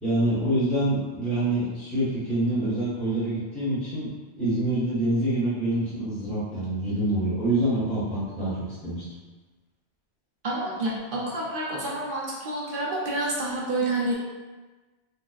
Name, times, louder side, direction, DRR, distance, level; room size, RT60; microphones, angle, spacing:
voice 1, 0.0-4.1 4.4-9.0, right 1 dB, ahead, -11 dB, 0.9 m, -26 dB
voice 2, 10.4-14.1, right 2 dB, 55° right, -4 dB, 0.7 m, -28 dB
3.5 x 2.8 x 2.3 m, 1.2 s
omnidirectional pair, 1.2 m